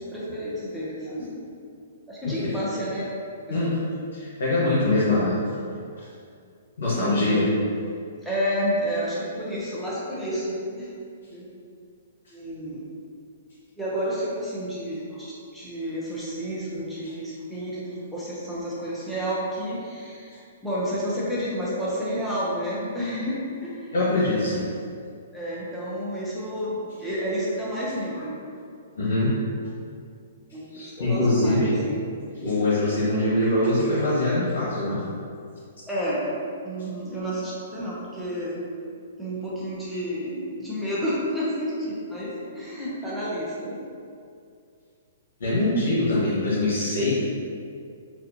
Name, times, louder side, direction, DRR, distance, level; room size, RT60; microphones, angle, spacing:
voice 1, 0.0-1.4 2.1-3.0 3.5-3.7 6.9-7.5 8.2-10.9 11.3-11.4 12.3-12.9 13.8-23.4 23.6-23.9 25.3-28.3 30.5-32.0 35.9-36.2 36.6-38.6 39.2-43.8, equal, ahead, -9 dB, 0.7 m, -30 dB
voice 2, 3.5-3.8 4.1-5.4 6.0-6.1 6.8-7.5 23.9-24.7 28.1-28.2 29.0-29.3 30.7-31.8 32.4-35.0 45.4-47.1, left 2 dB, 85° left, -8 dB, 0.9 m, -23 dB
4.1 x 2.4 x 2.7 m, 2.3 s
hypercardioid pair, 155°, 0 cm